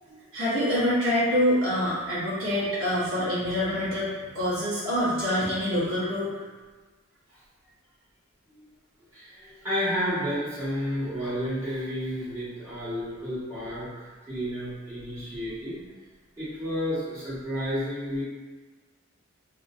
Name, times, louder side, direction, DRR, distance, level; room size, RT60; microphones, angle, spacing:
voice 1, 0.3-6.5, equal, 70° right, -10 dB, 1.0 m, -26 dB
voice 2, 9.1-15.8 16.4-18.2, equal, 15° right, -14 dB, 1.3 m, -31 dB
2.8 x 2.6 x 2.4 m, 1.3 s
head